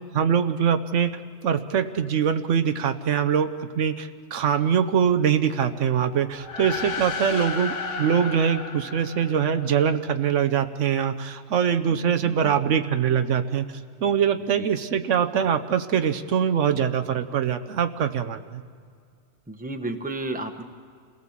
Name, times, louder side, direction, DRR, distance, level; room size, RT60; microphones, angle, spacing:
voice 1, 0.0-13.7 14.0-18.6, right 8 dB, 75° right, 8 dB, 1.1 m, -23 dB
sound 1, 6.3-10.0, left 4 dB, 75° left, 1.4 m, -33 dB
voice 2, 12.2-12.6 14.6-14.7 19.5-20.6, right 2 dB, 5° right, 5 dB, 1.0 m, -33 dB
28.0 x 17.5 x 7.3 m, 2.2 s
omnidirectional pair, 1.3 m